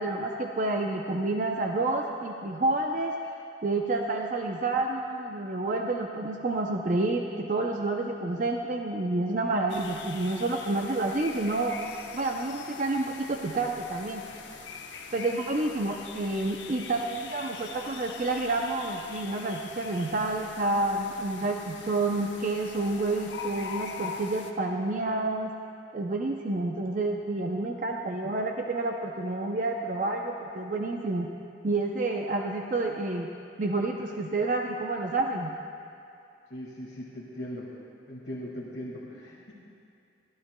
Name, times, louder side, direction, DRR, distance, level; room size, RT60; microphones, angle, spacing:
voice 1, 0.0-3.1 3.6-11.8 12.1-14.2 15.1-25.5 25.9-31.3 31.6-33.3 33.6-35.5, right 2 dB, 45° right, 2 dB, 0.5 m, -29 dB
sound 1, 9.7-24.5, left 5 dB, 80° left, 0.9 m, -43 dB
voice 2, 36.5-37.7 38.1-39.5, equal, 60° left, -6 dB, 1.8 m, -39 dB
25.0 x 13.0 x 2.2 m, 2.6 s
head